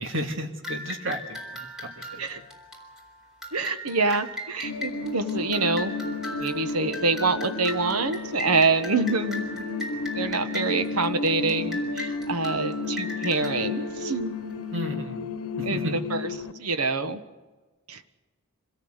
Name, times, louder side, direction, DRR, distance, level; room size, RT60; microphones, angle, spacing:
voice 1, 0.0-2.4 3.9-4.0 14.7-15.2 15.6-16.0, equal, 55° right, 4 dB, 2.5 m, -33 dB
sound 1, 0.6-14.8, left 1 dB, ahead, 3.9 m, -39 dB
voice 2, 3.5-5.9 6.4-9.7 10.1-14.3 15.7-16.2 16.6-17.2 17.9-18.0, right 3 dB, 80° right, 9 dB, 1.3 m, -26 dB
sound 2, 4.6-16.5, left 3 dB, 85° left, 1.1 m, -32 dB
25.5 x 17.5 x 8.1 m, 1.3 s
head